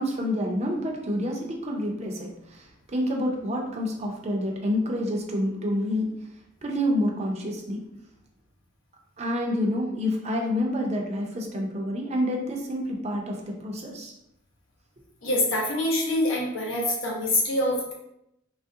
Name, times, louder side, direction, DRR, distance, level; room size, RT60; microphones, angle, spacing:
voice 1, 0.0-2.6 2.9-6.1 6.6-7.8 9.2-14.1, left 1 dB, 35° right, 0 dB, 0.5 m, -28 dB
voice 2, 15.2-17.9, left 1 dB, 85° left, -2 dB, 0.9 m, -25 dB
3.1 x 2.4 x 2.7 m, 0.81 s
head